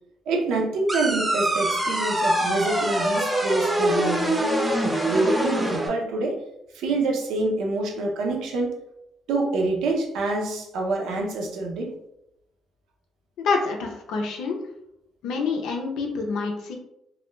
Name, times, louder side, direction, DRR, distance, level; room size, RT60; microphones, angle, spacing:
voice 1, 0.3-4.4 5.1-6.4 6.7-8.8 9.3-12.0, right 2 dB, 85° right, 1 dB, 0.5 m, -26 dB
sound 1, 0.9-5.9, right 1 dB, 20° right, 0.6 m, -24 dB
voice 2, 13.4-14.6 15.2-16.8, left 4 dB, 90° left, 2 dB, 0.5 m, -27 dB
2.3 x 2.1 x 3.0 m, 0.81 s
cardioid pair, 90°, 0 cm